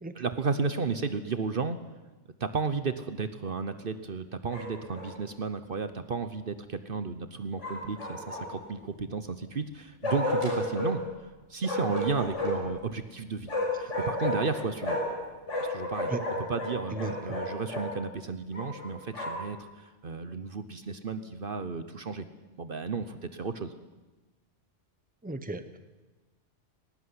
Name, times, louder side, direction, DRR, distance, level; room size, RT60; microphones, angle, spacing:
voice 1, 0.1-1.8 2.4-11.0 11.5-13.5 13.8-15.0 15.7-16.1 16.4-22.3 22.6-23.7, right 4 dB, 50° right, 11 dB, 1.1 m, -33 dB
Bark, 4.5-5.1 7.6-8.7 10.0-10.9 11.6-12.7 13.5-15.2 15.5-17.9 18.5-19.5, left 1 dB, 80° left, 6.3 m, -32 dB
voice 2, 25.2-25.8, right 2 dB, 10° right, 10 dB, 1.0 m, -35 dB
18.5 x 18.0 x 9.8 m, 1.2 s
omnidirectional pair, 1.2 m